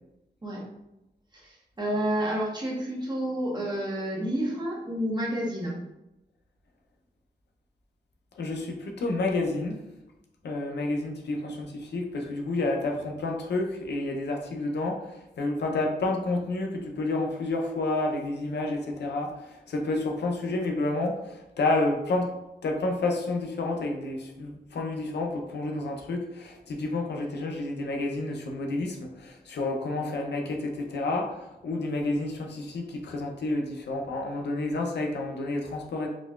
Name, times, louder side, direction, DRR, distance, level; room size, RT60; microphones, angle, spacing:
voice 1, 1.3-5.8, right 1 dB, 25° right, -4 dB, 1.2 m, -30 dB
voice 2, 8.4-9.8 10.4-22.3 22.6-36.1, left 2 dB, 85° left, 2 dB, 0.6 m, -30 dB
4.0 x 3.0 x 2.3 m, 0.91 s
wide cardioid pair, 80°, 17 cm